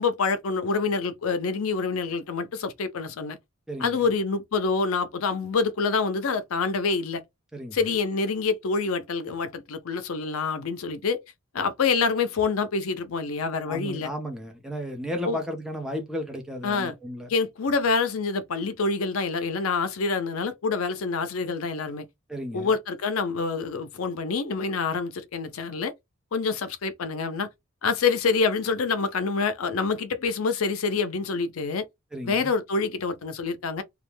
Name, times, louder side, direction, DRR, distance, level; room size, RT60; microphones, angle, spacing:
voice 1, 0.0-3.4 3.8-7.2 7.7-11.2 11.5-14.1 15.3-15.4 16.6-17.0 17.3-22.1 22.5-25.9 26.3-27.5 27.8-31.8 32.2-33.8, left 4 dB, 80° left, 0.5 m, -26 dB
voice 2, 3.7-4.1 7.5-7.8 13.7-17.3 22.3-22.7 32.1-32.5, equal, 5° right, 0.6 m, -34 dB
2.3 x 2.1 x 3.1 m
head